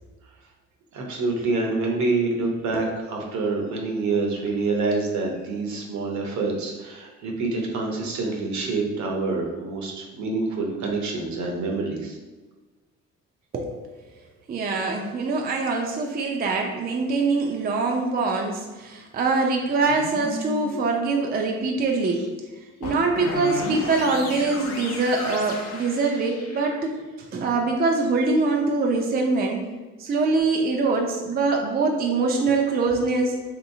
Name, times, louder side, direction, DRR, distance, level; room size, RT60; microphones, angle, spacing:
voice 1, 0.9-12.2, right 3 dB, 70° right, 0 dB, 0.8 m, -26 dB
voice 2, 13.5-13.9 14.5-22.3 22.8-29.6 30.0-33.4, right 3 dB, 30° right, 2 dB, 0.4 m, -24 dB
sound 1, 17.9-18.1 19.7-21.0 22.8-26.8 30.4-30.5, left 2 dB, 60° left, 0.7 m, -34 dB
3.1 x 2.9 x 2.7 m, 1.2 s
cardioid pair, 90°, 30 cm